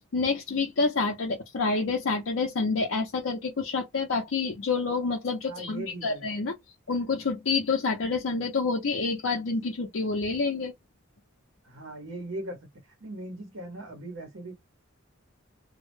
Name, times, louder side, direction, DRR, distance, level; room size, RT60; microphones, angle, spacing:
voice 1, 0.1-6.5 6.9-10.7, left 4 dB, 75° left, 0.6 m, -28 dB
voice 2, 5.4-6.3 11.6-14.5, right 1 dB, 80° right, 0.8 m, -39 dB
2.2 x 2.0 x 3.1 m
head